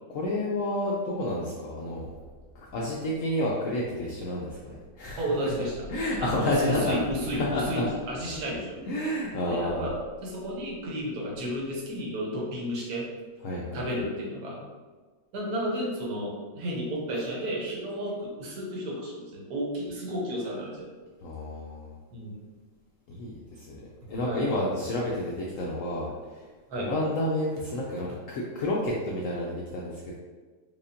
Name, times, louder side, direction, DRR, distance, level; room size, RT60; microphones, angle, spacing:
voice 1, 0.1-2.1 2.5-7.0 7.3-7.9 8.9-9.9 13.4-13.8 21.2-21.9 23.1-26.4 26.7-30.1, left 1 dB, 90° left, -4 dB, 0.7 m, -30 dB
sound 1, 1.9-12.1, left 1 dB, 65° left, 1.4 m, -48 dB
voice 2, 5.2-5.9 6.2-8.8 9.5-13.1 13.7-14.6 15.3-20.9 22.1-22.3 24.2-24.4 26.7-26.9, equal, 65° right, -3 dB, 1.3 m, -32 dB
4.9 x 2.4 x 2.5 m, 1.4 s
omnidirectional pair, 1.9 m